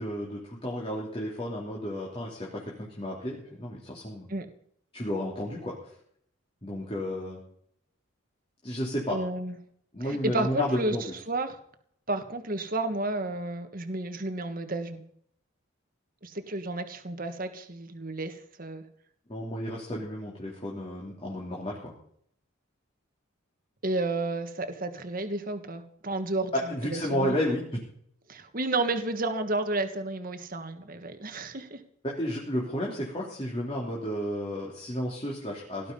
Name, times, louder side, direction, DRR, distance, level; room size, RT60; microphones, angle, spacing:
voice 1, 0.0-4.3 4.9-5.8 6.6-7.4 8.6-9.2 9.9-11.0 19.3-21.9 26.5-27.8 32.0-35.9, equal, 25° left, -4 dB, 3.1 m, -32 dB
voice 2, 9.1-9.6 10.0-11.0 11.3-11.6 12.1-15.0 16.2-18.8 23.8-27.4 28.3-31.8, right 2 dB, 45° right, 7 dB, 1.6 m, -31 dB
18.0 x 12.0 x 5.5 m, 0.66 s
head